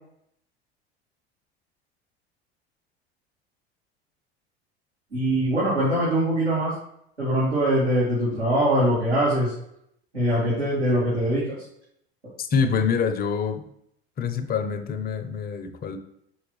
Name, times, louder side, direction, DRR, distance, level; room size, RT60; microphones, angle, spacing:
voice 1, 5.1-6.7 7.2-9.5 10.1-11.6, right 1 dB, 90° right, -12 dB, 2.5 m, -22 dB
voice 2, 12.4-13.6 14.2-16.0, left 6 dB, 30° left, 7 dB, 0.7 m, -25 dB
6.3 x 4.8 x 3.1 m, 0.74 s
figure-of-eight pair, 75°, 32 cm